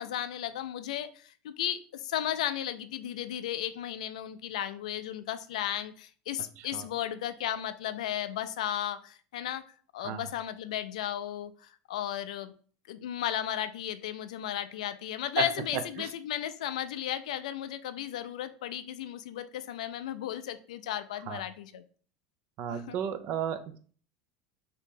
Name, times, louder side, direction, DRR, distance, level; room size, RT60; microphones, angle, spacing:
voice 1, 0.0-9.6 9.9-12.5 12.9-21.9 22.7-23.0, left 11 dB, 90° left, 12 dB, 0.3 m, -35 dB
voice 2, 22.6-23.8, right 9 dB, 55° right, 10 dB, 0.4 m, -33 dB
2.8 x 2.6 x 3.6 m, 0.44 s
supercardioid pair, 115°, 4 cm